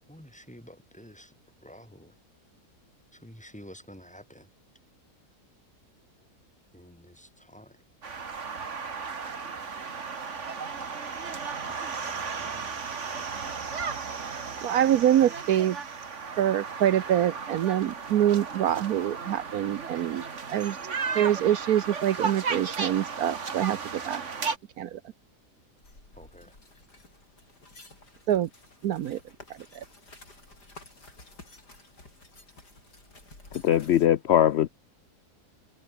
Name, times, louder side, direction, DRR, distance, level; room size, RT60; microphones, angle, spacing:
voice 1, 0.1-1.3 1.6-2.2 3.1-4.5 6.7-7.8 11.7-14.0 26.2-26.6, equal, 5° left, 2.6 m, -51 dB
sound 1, 8.0-24.6, right 5 dB, 45° right, 2.0 m, -35 dB
voice 2, 14.6-15.8 16.4-20.2 20.5-20.8 21.1-23.8 24.0-24.2 24.8-25.0 28.3-28.5 28.8-29.2 29.7-29.8, right 11 dB, 70° right, 1.2 m, -25 dB
sound 2, 25.8-34.1, left 2 dB, 90° left, 7.2 m, -52 dB
voice 3, 33.5-34.7, left 11 dB, 65° left, 0.6 m, -21 dB
omnidirectional pair, 1.7 m